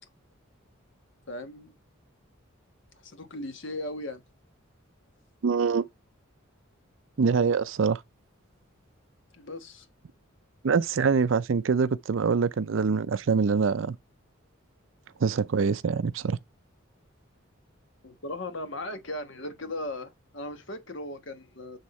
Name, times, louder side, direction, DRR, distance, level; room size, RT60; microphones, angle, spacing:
voice 1, 1.3-1.8 2.9-4.2 9.3-9.9 18.0-21.8, left 1 dB, 60° left, 1.3 m, -37 dB
voice 2, 5.4-5.8 7.2-8.0 10.6-14.0 15.2-16.4, right 5 dB, 65° right, 0.5 m, -24 dB
7.9 x 3.7 x 4.2 m
head